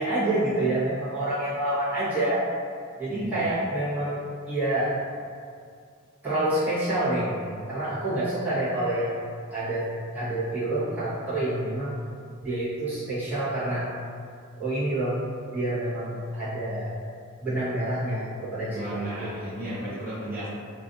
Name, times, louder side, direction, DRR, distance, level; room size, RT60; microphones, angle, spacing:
voice 1, 0.0-2.5 3.0-5.0 6.2-9.2 9.5-9.9 10.1-12.0 12.4-13.9 14.6-15.2 15.5-16.9 17.4-19.4, right 1 dB, 10° right, -15 dB, 1.0 m, -27 dB
voice 2, 3.1-3.6 18.7-20.5, right 1 dB, 40° right, -11 dB, 0.5 m, -34 dB
2.5 x 2.5 x 2.4 m, 2.2 s
head